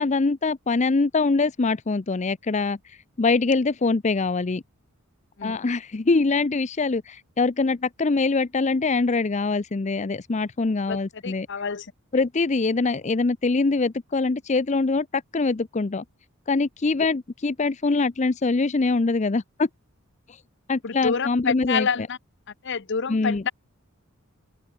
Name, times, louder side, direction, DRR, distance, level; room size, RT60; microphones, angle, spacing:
voice 1, 0.0-4.6 5.4-11.5 12.1-16.0 16.5-19.7 20.3-20.4 20.7-21.9 23.1-23.4, left 3 dB, 30° left, 0.5 m, -23 dB
voice 2, 11.2-11.9 20.8-22.2 22.6-23.5, left 5 dB, 55° left, 0.8 m, -27 dB
head